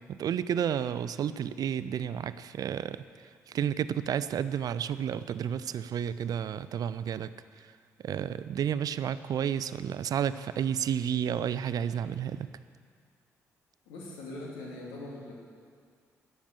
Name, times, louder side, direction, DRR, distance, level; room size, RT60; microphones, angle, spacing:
voice 1, 0.1-3.0 3.5-7.3 8.0-12.5, right 9 dB, 55° right, 15 dB, 0.5 m, -31 dB
voice 2, 13.8-15.3, left 2 dB, 75° left, -3 dB, 2.7 m, -41 dB
13.0 x 9.4 x 7.4 m, 2.1 s
figure-of-eight pair, 40°, 8 cm